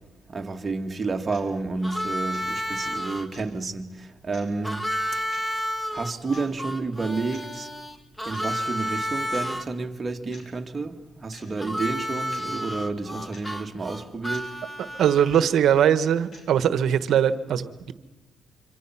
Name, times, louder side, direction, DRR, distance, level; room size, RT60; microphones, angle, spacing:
voice 1, 0.3-4.9 5.9-7.7 8.2-14.5, right 3 dB, 30° right, 2.1 m, -30 dB
sound 1, 1.3-1.5 2.3-2.5 3.3-3.5 4.3-4.5 5.3-5.5 6.3-6.5 7.3-7.5 8.3-8.5 9.3-9.5 10.3-10.5 11.3-11.5 12.3-12.5 13.3-13.5 14.3-14.5 15.3-15.5 16.3-16.5, left 2 dB, 50° left, 7.5 m, -48 dB
Harmonica, 1.8-3.3 4.6-9.6 11.6-15.5, equal, 10° left, 1.9 m, -31 dB
voice 2, 15.0-17.9, right 9 dB, 70° right, 1.3 m, -21 dB
26.0 x 24.5 x 5.9 m
cardioid pair, 90°, 0 cm